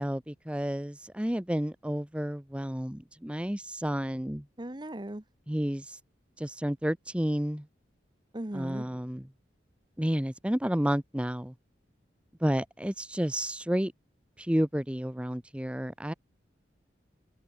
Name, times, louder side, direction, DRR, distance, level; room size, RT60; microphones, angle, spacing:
voice 1, 0.0-4.4 5.5-6.0 6.4-7.7 8.5-9.3 10.0-11.5 12.4-13.9 14.4-16.1, equal, 5° right, 0.7 m, -31 dB
voice 2, 4.6-5.2 8.3-8.9, right 1 dB, 25° right, 1.0 m, -37 dB
head